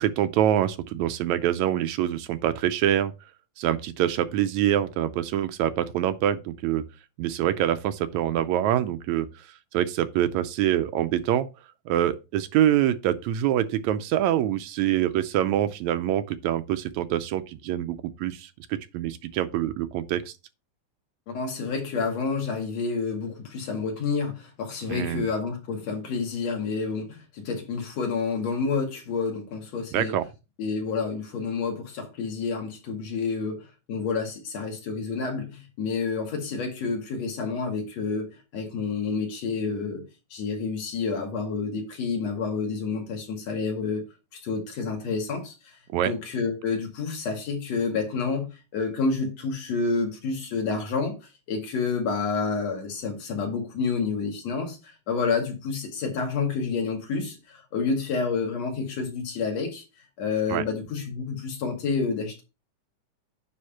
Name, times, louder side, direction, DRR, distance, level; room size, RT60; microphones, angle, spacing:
voice 1, 0.0-3.1 3.6-6.8 7.2-9.3 9.7-11.5 11.9-20.3 24.9-25.3 29.9-30.3 45.9-46.1 60.5-60.6, right 11 dB, 80° right, 1.9 m, -25 dB
voice 2, 21.3-30.1 30.6-38.3 38.5-40.0 40.3-44.0 44.3-45.7 46.0-51.2 51.5-59.8 60.2-62.4, left 4 dB, 60° left, 3.2 m, -29 dB
9.6 x 3.6 x 5.7 m
omnidirectional pair, 3.4 m